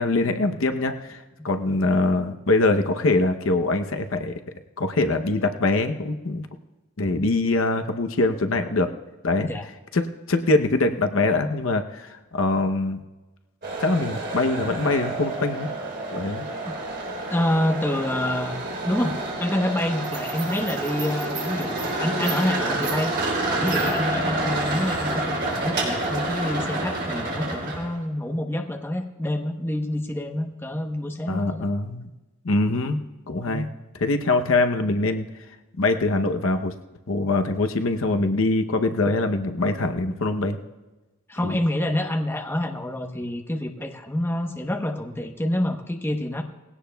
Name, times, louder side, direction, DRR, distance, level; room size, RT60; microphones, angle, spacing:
voice 1, 0.0-4.4 4.8-6.5 7.0-8.9 9.2-9.5 9.9-13.0 13.8-15.7 16.1-16.5 31.3-32.1 32.4-33.7 34.0-35.3 35.8-36.7 37.1-40.6 41.4-41.6, left 2 dB, 65° left, 6 dB, 0.8 m, -23 dB
voice 2, 9.4-9.7 16.6-16.7 17.3-18.6 18.8-23.2 23.5-31.7 33.5-33.7 41.3-46.4, left 1 dB, 10° left, 3 dB, 0.9 m, -27 dB
sound 1, 13.6-28.0, right 2 dB, 50° right, 3.5 m, -28 dB
19.5 x 17.0 x 2.3 m, 1.1 s
head